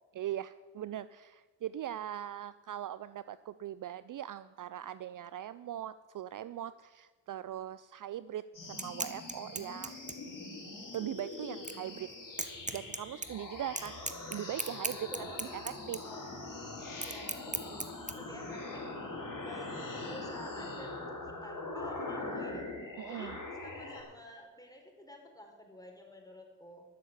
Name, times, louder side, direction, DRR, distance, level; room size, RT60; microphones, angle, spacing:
voice 1, 0.1-10.0 10.9-12.1 12.7-14.0 14.3-16.0 23.0-23.4, right 11 dB, 50° right, 15 dB, 0.5 m, -40 dB
sound 1, 8.5-24.0, left 2 dB, 50° left, 4.5 m, -42 dB
sound 2, 8.6-18.1, right 3 dB, 15° right, 1.2 m, -41 dB
voice 2, 15.1-15.4 16.0-16.2 16.9-22.7 23.1-26.8, left 1 dB, 10° left, 2 dB, 4.2 m, -50 dB
12.5 x 7.3 x 8.3 m, 1.3 s
supercardioid pair, 45°, 42 cm